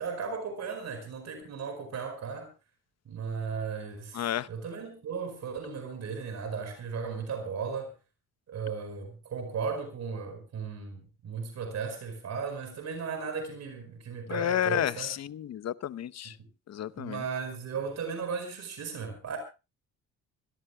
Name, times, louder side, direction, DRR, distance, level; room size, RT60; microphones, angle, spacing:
voice 1, 0.0-2.5 3.0-7.9 8.5-15.1 17.0-19.4, right 5 dB, 60° right, 5.1 m, -36 dB
voice 2, 4.1-4.5 14.3-16.4 16.7-17.2, left 10 dB, 60° left, 0.9 m, -31 dB
26.0 x 17.5 x 2.3 m
cardioid pair, 90°, 30 cm